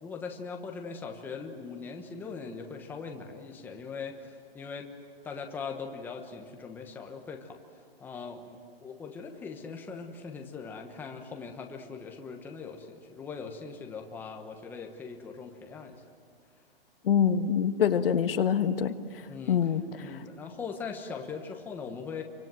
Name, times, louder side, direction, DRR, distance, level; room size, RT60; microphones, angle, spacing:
voice 1, 0.0-4.9 5.2-7.6 8.0-16.0 19.3-19.7 20.0-22.2, left 5 dB, 5° left, 2 dB, 1.2 m, -40 dB
voice 2, 17.0-18.9 19.5-19.8, left 8 dB, 65° left, 8 dB, 1.6 m, -25 dB
27.5 x 25.0 x 7.8 m, 2.1 s
hypercardioid pair, 160°, 31 cm